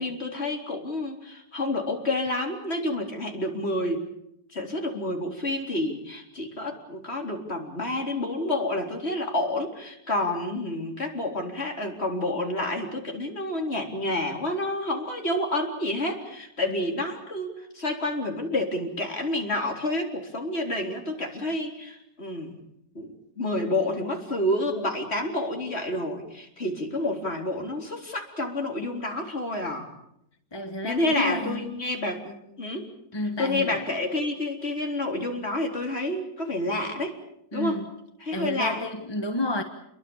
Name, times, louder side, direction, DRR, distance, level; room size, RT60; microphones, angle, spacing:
voice 1, 0.0-4.1 4.5-22.6 22.9-29.9 30.8-32.9 33.4-37.1 37.5-37.8 38.2-38.9, left 1 dB, 35° left, 4.2 m, -29 dB
voice 2, 30.5-31.6 33.1-33.8 37.5-37.8 38.3-39.6, left 2 dB, 15° left, 1.2 m, -30 dB
29.0 x 22.5 x 7.1 m
omnidirectional pair, 1.9 m